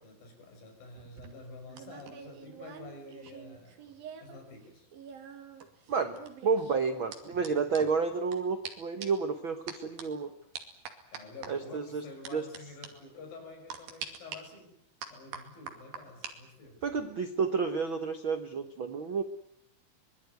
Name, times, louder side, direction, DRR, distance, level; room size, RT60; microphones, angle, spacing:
voice 1, 0.0-3.8 4.2-4.9 11.1-14.8 15.1-16.8, left 3 dB, 75° left, 4 dB, 7.6 m, -49 dB
sound 1, 1.0-4.4 4.6-8.4 8.6-8.7 9.0-9.3 9.7-10.0 10.5-11.5 12.2-12.6 12.8-12.9 13.7-14.4 15.0-16.3 16.7-17.0, right 7 dB, 80° right, 4.2 m, -45 dB
voice 2, 5.9-10.3 11.5-12.0 12.3-12.4 16.8-19.2, right 5 dB, 65° right, 9 dB, 1.2 m, -30 dB
24.0 x 21.0 x 9.4 m, 0.73 s
omnidirectional pair, 4.1 m